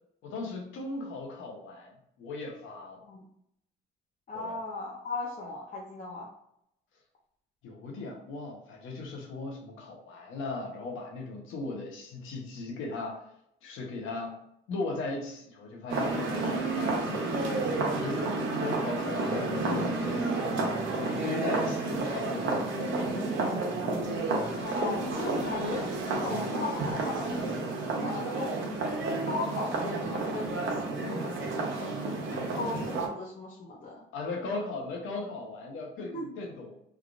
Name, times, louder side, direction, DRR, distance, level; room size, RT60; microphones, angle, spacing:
voice 1, 0.2-3.0 4.3-4.6 7.6-13.2 13.6-14.4 14.7-20.6 20.9-23.4 34.1-36.8, left 3 dB, 85° left, 2 dB, 0.8 m, -38 dB
voice 2, 4.3-6.3 18.5-19.0 24.6-27.4 27.9-28.5 29.1-31.4 31.8-34.1 36.0-36.3, left 3 dB, 45° left, -4 dB, 0.7 m, -37 dB
sound 1, 15.9-33.1, right 3 dB, 75° right, 0.7 m, -31 dB
3.3 x 2.4 x 2.4 m, 0.76 s
cardioid pair, 90°, 20 cm